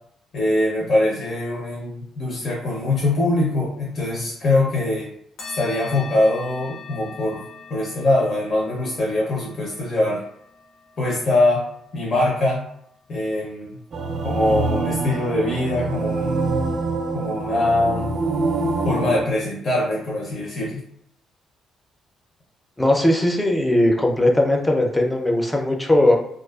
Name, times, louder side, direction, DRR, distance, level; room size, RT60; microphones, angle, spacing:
voice 1, 0.3-5.1 5.5-10.2 11.0-11.6 11.9-12.7 13.1-13.8 14.2-16.6 17.1-18.2 18.8-20.8, left 2 dB, 50° left, -4 dB, 0.6 m, -22 dB
sound 1, 5.4-14.3, left 5 dB, 85° left, 0.9 m, -43 dB
sound 2, 13.9-19.2, right 3 dB, 55° right, 0.3 m, -25 dB
voice 2, 22.8-26.2, left 1 dB, 10° left, 1 dB, 0.5 m, -18 dB
2.4 x 2.3 x 2.3 m, 0.72 s
cardioid pair, 90°, 0 cm